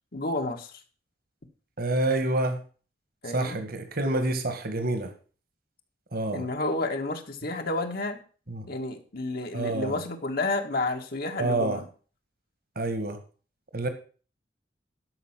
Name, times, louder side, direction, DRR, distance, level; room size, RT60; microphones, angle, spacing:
voice 1, 0.1-0.8 3.2-3.6 6.3-8.2 8.7-11.9, left 2 dB, 55° left, 4 dB, 1.6 m, -30 dB
voice 2, 1.8-2.6 3.3-5.1 6.1-6.4 8.5-8.7 9.5-9.9 11.4-11.8 12.8-13.2 13.7-13.9, right 2 dB, 55° right, 8 dB, 1.9 m, -27 dB
12.5 x 5.6 x 7.3 m, 0.39 s
head